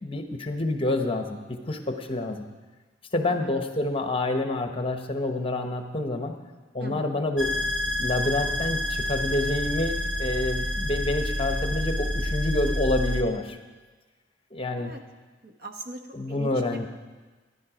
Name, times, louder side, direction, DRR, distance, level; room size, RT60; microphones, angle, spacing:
voice 1, 0.0-2.4 3.1-6.4 6.7-7.6 8.0-13.6 14.5-14.9 16.1-16.9, left 2 dB, 30° left, 5 dB, 1.0 m, -28 dB
voice 2, 6.8-7.2 14.8-15.0 15.4-16.0 16.3-16.9, right 2 dB, 60° right, 4 dB, 1.2 m, -40 dB
sound 1, 7.4-13.2, left 1 dB, 85° right, 1.2 m, -28 dB
14.0 x 11.0 x 5.0 m, 1.3 s
head